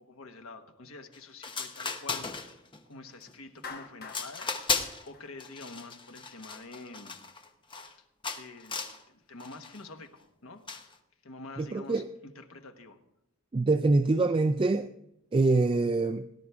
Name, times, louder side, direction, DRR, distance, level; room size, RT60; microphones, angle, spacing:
voice 1, 0.0-2.3 2.9-4.7 5.1-7.1 8.4-8.8 9.3-10.6 11.2-12.0 12.5-13.0, left 3 dB, 75° left, 1.2 m, -47 dB
sound 1, 1.1-1.2 1.4-2.8 3.2-3.6 4.1-5.1 5.4-7.9 8.2-9.0 9.4-9.8 10.7-10.9, left 5 dB, 25° left, 0.9 m, -36 dB
Clapping, 3.6-5.9, left 5 dB, 50° left, 1.3 m, -46 dB
voice 2, 11.6-12.1 13.5-14.9 15.3-16.3, right 3 dB, 25° right, 0.3 m, -25 dB
18.5 x 11.0 x 3.5 m
head